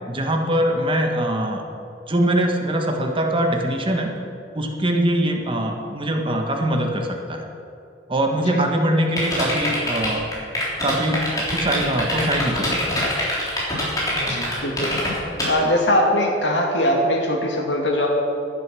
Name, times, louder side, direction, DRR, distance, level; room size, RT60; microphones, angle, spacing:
voice 1, 0.1-1.6 2.1-4.1 4.5-7.4 8.1-10.3 10.8-13.1, right 1 dB, 30° right, 3 dB, 1.3 m, -22 dB
sound 1, 9.2-15.4, left 1 dB, 20° left, 3.6 m, -24 dB
voice 2, 14.2-14.9 15.5-18.1, left 1 dB, 75° left, 0 dB, 2.3 m, -21 dB
11.0 x 10.0 x 6.2 m, 2.6 s
head